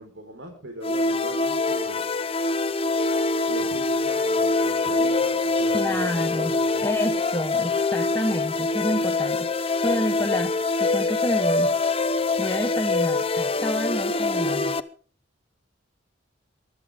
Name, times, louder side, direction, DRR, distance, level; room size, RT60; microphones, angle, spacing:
voice 1, 0.0-2.0 3.5-6.9, right 1 dB, 75° right, 2 dB, 4.4 m, -39 dB
sound 1, 0.8-14.8, left 3 dB, 30° left, 0.9 m, -24 dB
voice 2, 5.7-6.5 6.8-11.8 12.4-14.8, equal, 15° left, 4 dB, 1.2 m, -29 dB
23.5 x 13.0 x 3.7 m, 0.40 s
head